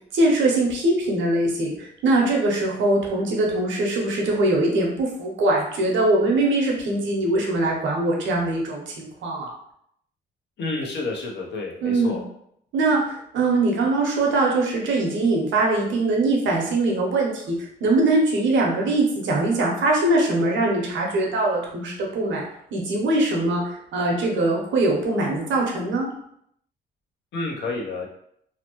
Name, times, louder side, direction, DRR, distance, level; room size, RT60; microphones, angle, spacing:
voice 1, 0.1-9.5 11.8-12.2 12.7-22.4 22.7-26.1, right 2 dB, 70° right, -1 dB, 0.9 m, -22 dB
voice 2, 10.6-12.2 27.3-28.1, left 3 dB, 60° left, -1 dB, 0.8 m, -29 dB
2.8 x 2.1 x 2.9 m, 0.71 s
cardioid pair, 90°, 20 cm